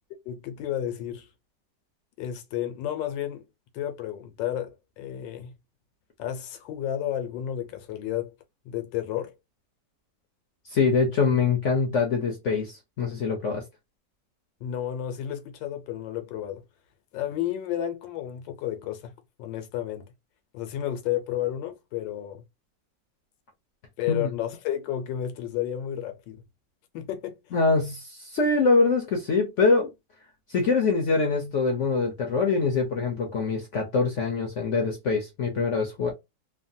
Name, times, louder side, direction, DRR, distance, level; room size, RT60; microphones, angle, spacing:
voice 1, 0.3-1.3 2.2-3.4 3.7-5.5 6.2-8.3 8.7-9.3 14.6-16.6 17.1-19.1 19.4-20.0 20.5-22.4 24.0-26.4 26.9-27.4, left 11 dB, 90° left, 1.4 m, -31 dB
voice 2, 10.7-13.6 24.1-24.3 27.5-29.9 30.5-36.1, left 4 dB, 65° left, 0.7 m, -24 dB
3.2 x 2.1 x 2.6 m
omnidirectional pair, 2.0 m